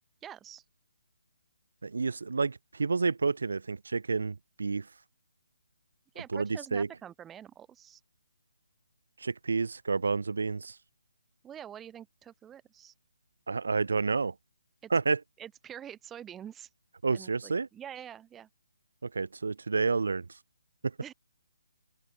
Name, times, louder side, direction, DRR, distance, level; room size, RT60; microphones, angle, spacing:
voice 1, 0.2-0.6 6.1-8.0 11.4-12.9 14.8-14.9 15.4-16.7 17.1-18.5 21.0-21.1, right 9 dB, 10° right, 1.0 m, -46 dB
voice 2, 1.8-4.9 6.3-6.9 9.2-10.8 13.5-14.3 14.9-15.2 17.0-17.7 19.0-20.3 20.8-20.9, right 4 dB, 75° right, 0.7 m, -29 dB
open air
figure-of-eight pair, 150°, 0 cm